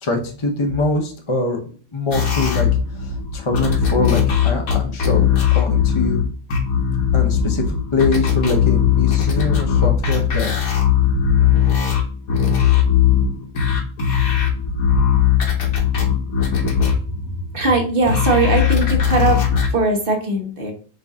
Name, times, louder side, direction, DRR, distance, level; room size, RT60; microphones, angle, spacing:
voice 1, 0.0-1.6 1.9-2.7 2.9-6.2 7.1-7.7 7.9-10.5, left 3 dB, 35° left, 2 dB, 0.5 m, -23 dB
sound 1, 2.1-17.7 18.1-19.7, left 8 dB, 70° left, 1.5 m, -18 dB
voice 2, 17.5-20.7, right 3 dB, 40° right, 2 dB, 1.0 m, -19 dB
5.5 x 2.6 x 3.4 m, 0.41 s
omnidirectional pair, 1.6 m